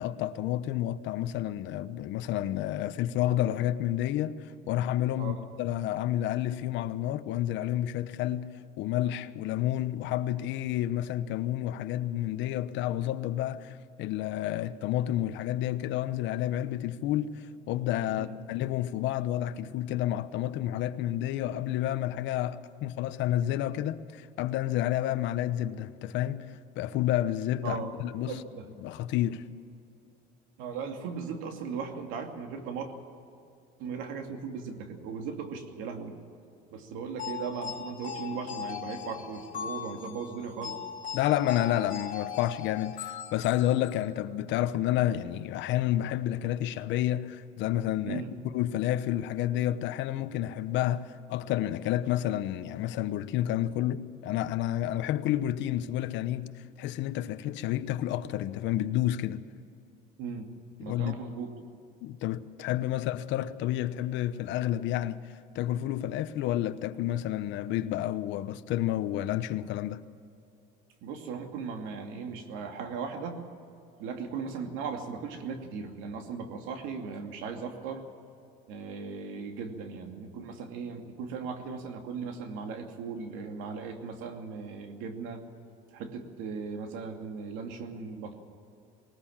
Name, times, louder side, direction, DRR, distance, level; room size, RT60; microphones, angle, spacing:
voice 1, 0.0-4.4 4.7-8.5 8.8-28.4 28.8-29.4 41.1-48.2 48.5-56.5 56.8-59.4 60.8-61.2 62.0-70.0, left 13 dB, 70° left, 1.0 m, -30 dB
voice 2, 5.2-5.5 18.1-18.3 27.6-28.0 28.3-28.6 30.6-32.9 33.8-36.2 36.7-40.8 48.1-48.3 60.2-60.5 60.8-61.5 62.9-63.0 71.0-73.4 74.0-78.1 78.7-85.4 85.9-88.3, right 5 dB, 90° right, 2.6 m, -37 dB
sound 1, 37.2-44.0, left 8 dB, 45° left, 3.3 m, -39 dB
20.0 x 19.5 x 7.4 m
cardioid pair, 135°, 20 cm